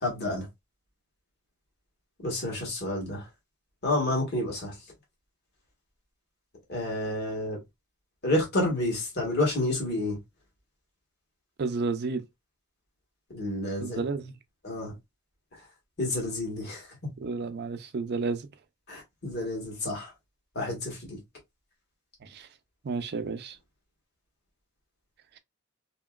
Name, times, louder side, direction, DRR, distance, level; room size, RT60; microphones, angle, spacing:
voice 1, 0.0-0.4 2.2-3.2 3.8-4.7 6.7-7.6 8.2-10.2 13.3-14.0 14.6-14.9 16.0-17.1 18.9-20.1 20.5-21.2, left 1 dB, 50° left, 1.4 m, -29 dB
voice 2, 11.6-12.2 13.8-14.3 17.2-18.5 22.2-22.5 22.8-23.6, right 4 dB, 50° right, 0.5 m, -31 dB
2.9 x 2.9 x 2.3 m
head